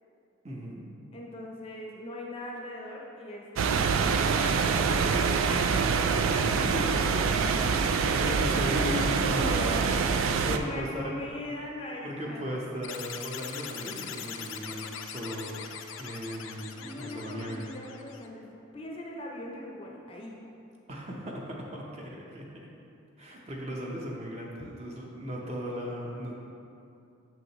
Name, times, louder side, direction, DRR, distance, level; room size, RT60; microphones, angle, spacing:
voice 1, 0.4-0.9 6.2-10.0 10.4-11.2 12.0-15.5 16.0-17.7 20.9-22.7 23.2-26.4, equal, 30° right, -3 dB, 0.8 m, -37 dB
voice 2, 1.1-5.7 8.7-9.9 10.5-12.6 16.8-20.4 24.6-24.7, left 1 dB, 25° left, -1 dB, 0.6 m, -40 dB
sound 1, 3.6-10.6, right 5 dB, 80° right, 0.3 m, -25 dB
sound 2, 12.8-18.3, left 8 dB, 75° left, 0.4 m, -41 dB
6.5 x 6.2 x 3.0 m, 2.7 s
head